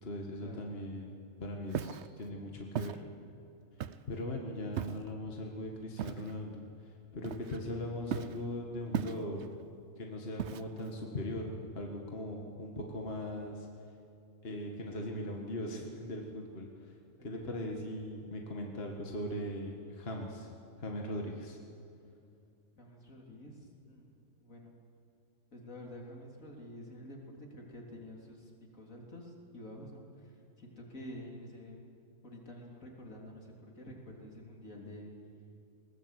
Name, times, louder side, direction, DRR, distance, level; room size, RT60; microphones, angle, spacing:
voice 1, 0.0-3.2 4.1-6.7 7.1-9.5 10.0-13.7 14.4-16.7 17.2-20.5 20.8-21.6, left 1 dB, 45° left, 0 dB, 2.0 m, -39 dB
Walk footsteps, 1.7-2.1 2.8-3.0 3.8-4.2 4.8-5.1 6.0-6.3 7.2-7.7 8.1-8.4 8.9-9.5 10.4-10.9, right 9 dB, 60° right, 0.9 m, -37 dB
voice 2, 17.2-17.6 22.8-24.1 24.4-24.8 25.5-31.8 32.2-35.1, left 1 dB, 75° left, -1 dB, 3.7 m, -49 dB
20.5 x 19.5 x 8.2 m, 2.5 s
omnidirectional pair, 1.4 m